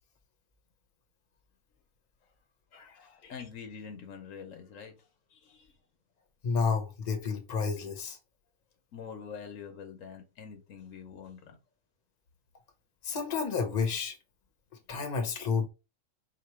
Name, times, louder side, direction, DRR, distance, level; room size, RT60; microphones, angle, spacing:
voice 1, 2.7-5.7 8.9-11.6, left 6 dB, 80° left, 1.3 m, -46 dB
voice 2, 6.4-8.2 13.0-14.1 14.9-15.7, left 5 dB, 35° left, 1.0 m, -30 dB
4.7 x 3.0 x 3.1 m
omnidirectional pair, 1.3 m